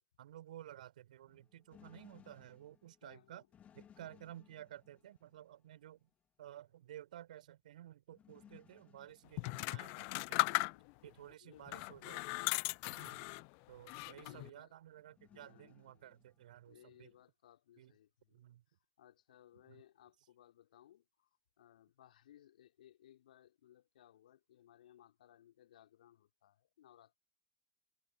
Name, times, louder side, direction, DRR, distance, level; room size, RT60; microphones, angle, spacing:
voice 1, 0.2-3.4 3.7-6.1 6.4-10.4 11.0-12.2 12.9-13.2 13.7-17.1 17.8-17.9 18.3-18.6 19.5-19.8, right 12 dB, 70° right, 5.3 m, -54 dB
sound 1, 1.3-6.1 8.1-10.3 10.6-10.7 13.3-13.4 14.9-17.2, left 9 dB, 30° left, 3.6 m, -65 dB
voice 2, 3.0-3.4 4.0-4.1 10.5-11.0 11.4-11.8 12.8-13.3 14.2-14.7 15.3-16.2 16.7-18.4 19.0-21.3 21.6-27.2, left 11 dB, 70° left, 3.7 m, -63 dB
sound 2, 9.4-11.1 11.7-13.5 13.9-14.5, left 36 dB, 55° left, 0.9 m, -37 dB
figure-of-eight pair, 80°, 5 cm